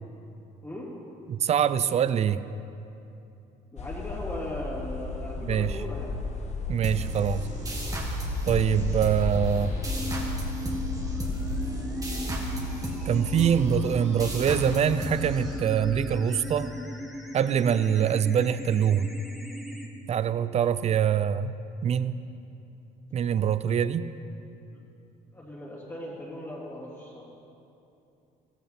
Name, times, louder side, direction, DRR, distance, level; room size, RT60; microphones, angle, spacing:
voice 1, 1.3-2.4 5.4-5.8 6.7-7.5 8.5-9.7 13.1-16.7 17.3-19.1 20.1-21.5 21.8-22.2 23.1-24.1, right 8 dB, 40° right, 14 dB, 0.5 m, -24 dB
voice 2, 3.7-6.1 24.7-24.8 25.3-27.2, left 1 dB, 15° left, -7 dB, 3.0 m, -38 dB
sound 1, 3.8-15.8, left 3 dB, 40° left, 1.3 m, -35 dB
sound 2, 6.8-16.1, right 1 dB, 20° right, 1.9 m, -34 dB
sound 3, 9.9-19.9, left 1 dB, ahead, 1.6 m, -38 dB
15.5 x 14.0 x 4.3 m, 2.8 s
cardioid pair, 110°, 17 cm